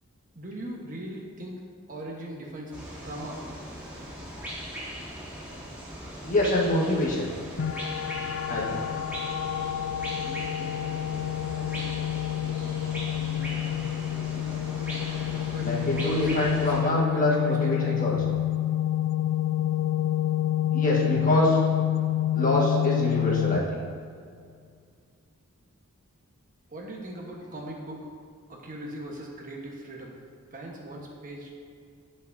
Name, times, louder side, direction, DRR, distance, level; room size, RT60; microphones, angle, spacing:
voice 1, 0.3-1.6 1.9-3.4 15.5-18.0 26.7-28.1 28.5-30.1 30.5-31.5, right 1 dB, 40° right, -1 dB, 1.2 m, -39 dB
sound 1, 2.7-16.8, equal, 10° right, 1.9 m, -39 dB
voice 2, 6.2-7.3 8.5-8.9 15.6-18.2 20.7-21.6 22.3-23.8, left 1 dB, 35° left, -3 dB, 1.6 m, -25 dB
sound 2, 7.6-23.6, left 12 dB, 60° left, 0.3 m, -28 dB
17.0 x 5.6 x 2.7 m, 2.2 s
head